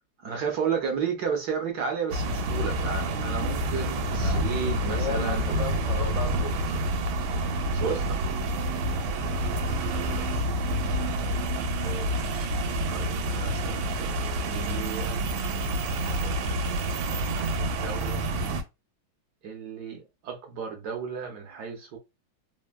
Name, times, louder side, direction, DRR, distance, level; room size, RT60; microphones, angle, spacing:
voice 1, 0.2-5.6 7.7-8.2 11.7-12.5 12.9-14.2 14.4-15.2 16.2-18.3 19.4-22.0, right 6 dB, 65° right, 1.1 m, -33 dB
sound 1, 2.1-18.6, right 1 dB, 85° right, 1.4 m, -28 dB
voice 2, 4.8-6.7 9.9-10.7, left 4 dB, 65° left, 0.3 m, -36 dB
3.3 x 2.1 x 2.2 m
omnidirectional pair, 2.2 m